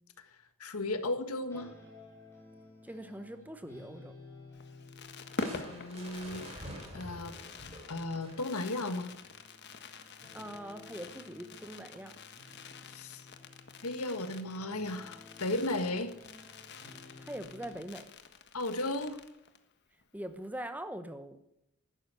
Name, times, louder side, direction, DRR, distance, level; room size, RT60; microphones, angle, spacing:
voice 1, 0.6-1.7 5.5-6.5 6.9-7.3 7.9-9.1 12.9-13.2 13.8-16.1 18.5-19.2, left 2 dB, 80° left, 9 dB, 1.7 m, -35 dB
sound 1, 1.4-14.3 14.5-17.8, left 2 dB, 10° left, 6.6 m, -55 dB
voice 2, 2.8-4.1 10.3-12.1 17.2-18.1 20.1-21.4, right 1 dB, 5° right, 9 dB, 1.0 m, -42 dB
Fireworks, 4.5-19.7 20.0-20.1 20.3-20.6, left 3 dB, 50° left, 1.4 m, -47 dB
Crushing, 5.4-8.8, right 1 dB, 25° right, 4.5 m, -47 dB
14.5 x 12.0 x 8.1 m, 0.82 s
head